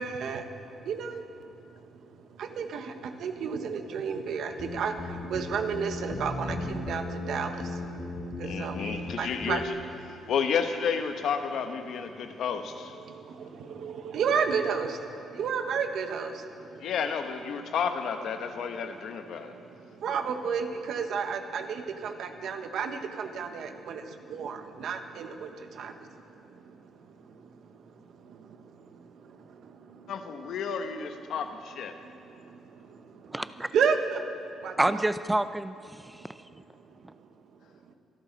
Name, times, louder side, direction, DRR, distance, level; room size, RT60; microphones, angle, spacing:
voice 1, 0.0-9.6 10.1-10.3 12.2-12.3 13.0-16.9 19.3-30.1 32.0-33.3 33.7-35.1 36.2-36.3 36.8-37.3, right 6 dB, 70° right, 6 dB, 1.2 m, -33 dB
sound 1, 4.5-9.1 9.4-9.7, left 2 dB, 45° left, 2.8 m, -36 dB
voice 2, 8.4-9.7 10.1-12.9 16.8-19.5 30.1-32.0, left 6 dB, 75° left, 7 dB, 1.0 m, -31 dB
voice 3, 33.3-33.7 34.8-36.3 37.0-37.1, right 1 dB, 10° right, 12 dB, 0.6 m, -28 dB
25.5 x 11.5 x 4.1 m, 2.6 s
cardioid pair, 90°, 0 cm